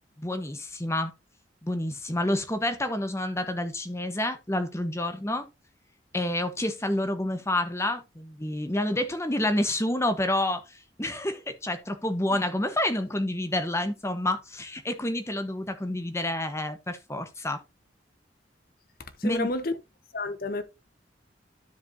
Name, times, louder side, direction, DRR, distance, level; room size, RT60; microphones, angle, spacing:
voice 1, 0.2-1.1 1.6-5.5 6.1-17.6 19.2-19.5, left 1 dB, 15° left, 1.0 m, -29 dB
voice 2, 19.2-19.7 20.1-20.6, left 2 dB, 55° left, 0.9 m, -29 dB
12.5 x 5.1 x 2.6 m
head